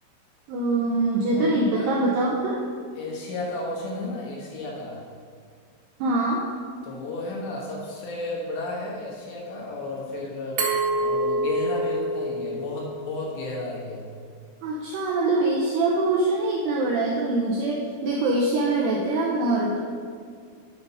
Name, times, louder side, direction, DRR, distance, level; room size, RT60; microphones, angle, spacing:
voice 1, 0.5-2.6 6.0-6.5 14.6-19.8, right 2 dB, 80° right, -2 dB, 2.4 m, -24 dB
voice 2, 1.3-1.9 3.0-5.0 6.8-10.6 11.0-14.0, left 2 dB, 70° left, -3 dB, 3.3 m, -33 dB
Glass, 10.6-13.4, right 1 dB, 55° right, 2.7 m, -27 dB
8.6 x 5.6 x 5.6 m, 2.1 s
omnidirectional pair, 5.8 m